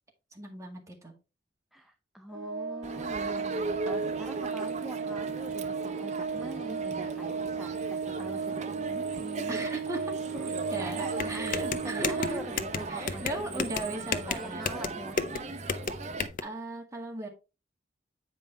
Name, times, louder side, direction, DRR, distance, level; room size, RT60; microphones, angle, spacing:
voice 1, 0.3-1.1 9.5-12.4 12.9-14.7 16.4-17.3, right 1 dB, 15° right, 1 dB, 1.9 m, -37 dB
voice 2, 1.7-8.6 8.9-9.6 10.4-10.5 10.8-13.7 14.3-15.3, right 1 dB, ahead, 5 dB, 0.5 m, -43 dB
Organ, 2.3-13.0, right 5 dB, 80° right, 0.5 m, -35 dB
Crowd, 2.8-16.3, right 3 dB, 40° right, 0.7 m, -38 dB
sound 1, 11.2-16.4, left 5 dB, 45° left, 0.6 m, -33 dB
8.5 x 5.3 x 3.4 m, 0.29 s
head